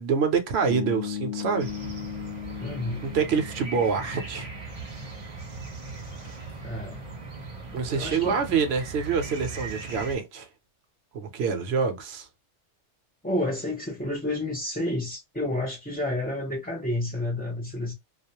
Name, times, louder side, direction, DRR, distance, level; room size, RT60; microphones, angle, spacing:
voice 1, 0.0-1.7 3.0-4.5 7.7-10.5 11.1-12.3, right 5 dB, 65° right, 0.8 m, -26 dB
Bass guitar, 0.7-4.8, left 10 dB, 55° left, 0.8 m, -36 dB
sound 1, 1.6-10.2, right 3 dB, 35° right, 0.6 m, -39 dB
voice 2, 2.6-3.0 6.6-7.0 7.9-8.4 13.2-17.9, left 1 dB, 15° left, 0.3 m, -30 dB
2.3 x 2.0 x 2.7 m
omnidirectional pair, 1.2 m